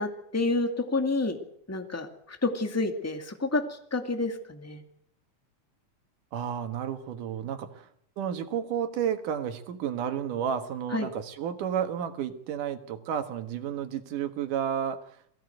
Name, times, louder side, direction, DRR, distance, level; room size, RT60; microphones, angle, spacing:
voice 1, 0.0-1.4 1.7-3.6 3.9-4.8 10.9-11.1, left 2 dB, 5° left, 5 dB, 1.7 m, -29 dB
voice 2, 6.3-7.9 8.2-15.0, right 8 dB, 90° right, 8 dB, 3.1 m, -31 dB
22.5 x 16.0 x 7.9 m, 0.68 s
omnidirectional pair, 3.6 m